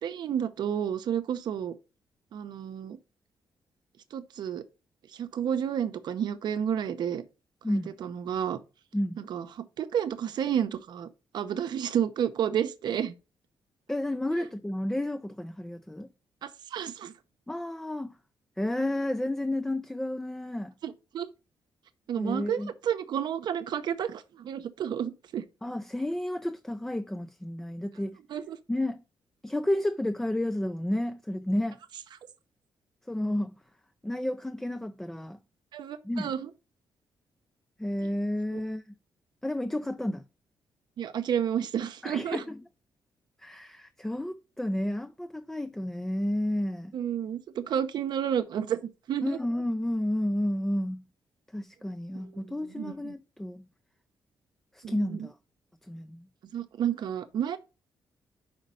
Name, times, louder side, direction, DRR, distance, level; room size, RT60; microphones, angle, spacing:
voice 1, 0.0-1.7 2.3-3.0 4.1-4.6 5.1-7.2 7.7-8.6 9.3-11.1 11.3-13.1 16.4-17.1 20.8-21.3 22.1-25.4 28.3-28.6 35.7-36.5 41.0-42.4 46.9-48.8 49.1-49.4 52.8-53.1 54.8-55.3 56.5-57.6, right 9 dB, 65° right, 0.7 m, -31 dB
voice 2, 7.6-7.9 8.9-9.2 13.9-16.1 17.5-18.2 18.6-20.7 22.2-22.7 25.6-28.2 28.7-29.0 29.4-31.8 33.1-33.5 34.0-35.4 36.0-36.3 37.8-38.8 39.4-40.2 42.0-42.6 43.4-46.9 49.2-51.0 51.5-53.6 54.7-55.3 55.9-56.3, left 1 dB, 5° left, 0.3 m, -31 dB
5.2 x 5.1 x 5.4 m
wide cardioid pair, 150°, 8 cm